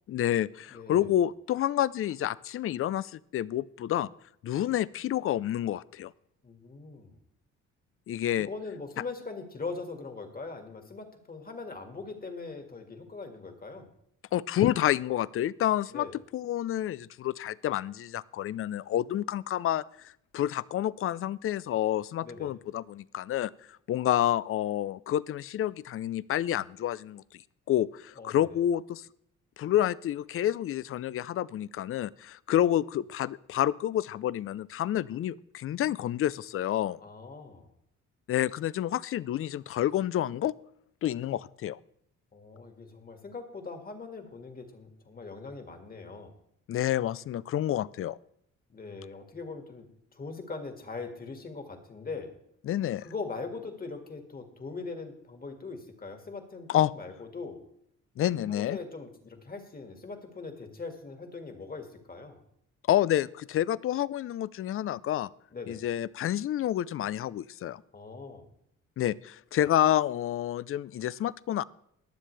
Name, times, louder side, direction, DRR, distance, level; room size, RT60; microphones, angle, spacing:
voice 1, 0.1-4.1 4.4-6.1 8.1-8.5 14.3-19.8 20.3-23.5 23.9-27.2 27.7-29.1 29.6-37.0 38.3-40.5 41.0-41.8 46.7-48.2 52.6-53.1 56.7-56.9 58.2-58.8 62.9-65.3 65.7-67.8 69.0-71.6, left 12 dB, 45° left, 21 dB, 0.4 m, -29 dB
voice 2, 0.7-1.1 6.4-7.2 8.4-13.9 15.9-16.1 22.2-22.5 28.2-28.6 37.0-37.7 42.3-46.3 48.7-52.3 53.0-57.6 58.5-62.4 65.5-65.8 67.9-68.5, left 4 dB, 30° left, 5 dB, 2.0 m, -41 dB
22.0 x 7.4 x 3.3 m, 0.73 s
cardioid pair, 90°, 30 cm